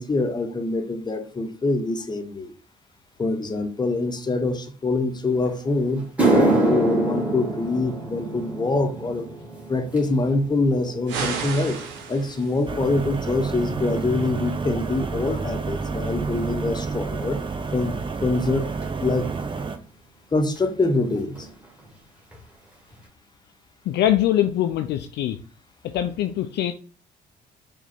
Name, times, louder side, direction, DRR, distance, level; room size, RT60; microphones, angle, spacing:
voice 1, 0.0-2.5 3.2-9.3 9.7-11.8 12.1-17.4 17.7-18.7 19.0-19.3 20.3-21.5, left 2 dB, 20° left, 6 dB, 0.8 m, -25 dB
sound 1, 5.5-5.6 6.0-14.5 14.8-15.2 16.0-16.1 18.8-18.9 20.6-20.7 20.8-21.1 21.3-21.9 22.3-22.4 22.9-23.0, right 2 dB, 5° right, 1.6 m, -27 dB
sound 2, 11.1-12.7, right 5 dB, 65° right, 0.8 m, -32 dB
sound 3, 12.7-19.8, right 4 dB, 25° right, 0.6 m, -29 dB
voice 2, 23.9-25.4 25.9-26.7, left 12 dB, 55° left, 8 dB, 0.4 m, -22 dB
4.7 x 2.2 x 4.2 m, 0.40 s
hypercardioid pair, 50°, 21 cm